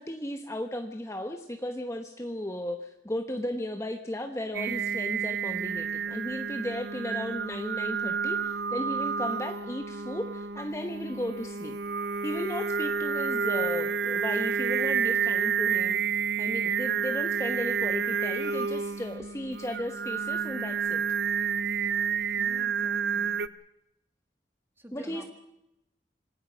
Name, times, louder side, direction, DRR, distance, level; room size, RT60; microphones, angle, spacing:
voice 1, 0.0-11.8 12.2-16.0 16.4-21.0 24.9-25.2, left 1 dB, 15° left, 5 dB, 1.1 m, -35 dB
Singing, 4.5-23.5, right 6 dB, 70° right, 0.7 m, -30 dB
voice 2, 19.1-19.5 22.4-23.4 24.8-25.3, equal, 15° right, 5 dB, 2.5 m, -49 dB
26.5 x 19.5 x 6.3 m, 0.86 s
head